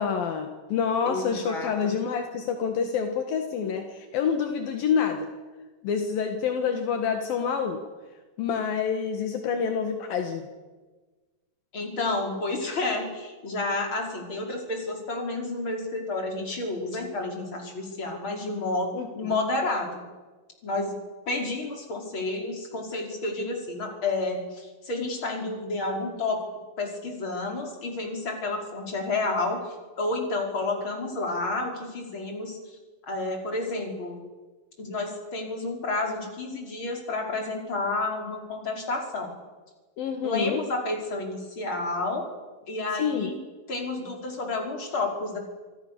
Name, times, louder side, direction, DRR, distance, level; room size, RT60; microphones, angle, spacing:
voice 1, 0.0-5.3 5.8-7.9 8.4-10.5 18.9-19.3 40.0-40.6 43.0-43.3, left 6 dB, 75° left, 5 dB, 3.4 m, -27 dB
voice 2, 1.1-1.9 11.7-20.0 20.6-20.9 21.3-26.4 26.8-32.8 33.1-34.2 34.8-39.3 40.2-42.2 42.7-43.4 43.7-45.4, left 2 dB, 30° left, 1 dB, 5.7 m, -30 dB
28.0 x 27.0 x 7.0 m, 1.3 s
omnidirectional pair, 4.2 m